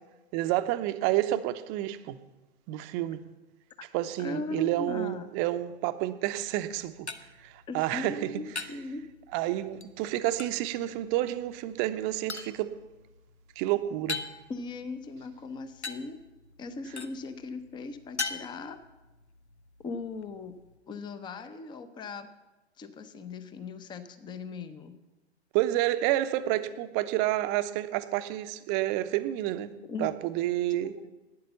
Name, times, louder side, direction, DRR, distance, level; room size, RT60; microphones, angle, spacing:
voice 1, 0.3-2.2 2.7-3.2 3.9-7.1 7.4-8.4 9.3-12.7 13.6-14.2 25.5-29.7 30.0-30.9, right 14 dB, 30° right, 11 dB, 0.8 m, -29 dB
voice 2, 4.2-5.3 7.7-9.0 14.5-16.2 16.6-18.8 19.8-20.6 20.9-22.3 22.8-25.0 29.9-30.1 30.7-31.1, left 3 dB, 15° left, 11 dB, 0.7 m, -39 dB
sound 1, 6.4-20.8, left 4 dB, 90° left, 0.9 m, -43 dB
11.5 x 9.4 x 6.9 m, 1.1 s
figure-of-eight pair, 105°, 33 cm